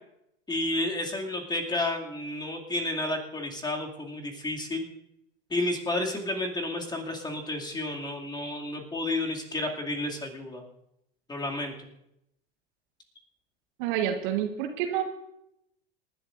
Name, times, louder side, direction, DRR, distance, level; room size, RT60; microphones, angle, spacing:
voice 1, 0.5-4.9 5.5-10.6 11.3-11.9, left 2 dB, 15° left, 1 dB, 2.4 m, -31 dB
voice 2, 13.8-15.0, right 10 dB, 55° right, 5 dB, 1.6 m, -28 dB
27.5 x 11.5 x 2.6 m, 0.79 s
figure-of-eight pair, 85°, 31 cm